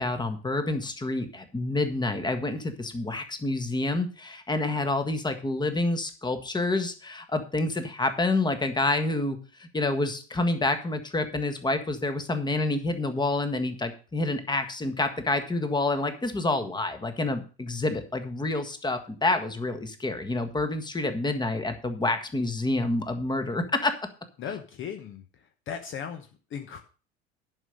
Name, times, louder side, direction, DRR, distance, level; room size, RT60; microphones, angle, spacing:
voice 1, 0.0-23.9, left 2 dB, 15° left, 8 dB, 1.5 m, -28 dB
voice 2, 24.4-25.2 25.7-26.8, left 7 dB, 35° left, 7 dB, 1.1 m, -37 dB
11.0 x 5.6 x 6.4 m, 0.36 s
figure-of-eight pair, 70°, 33 cm